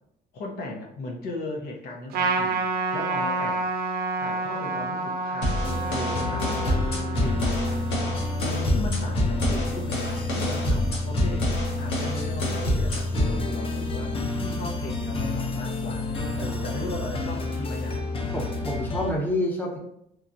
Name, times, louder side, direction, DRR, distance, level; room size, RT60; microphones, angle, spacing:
voice 1, 0.3-2.7 2.9-3.7 4.2-7.9 8.4-18.1, left 2 dB, 70° left, 1 dB, 0.6 m, -37 dB
Trumpet, 2.1-8.8, right 3 dB, 65° right, 0.5 m, -29 dB
sound 1, 5.4-13.4, left 1 dB, 90° left, 1.0 m, -27 dB
sound 2, 5.6-19.1, left 2 dB, 35° left, 0.5 m, -29 dB
voice 2, 16.4-16.7 18.3-19.8, left 1 dB, 10° left, -2 dB, 0.8 m, -28 dB
3.0 x 2.3 x 2.5 m, 0.74 s
cardioid pair, 110°, 17 cm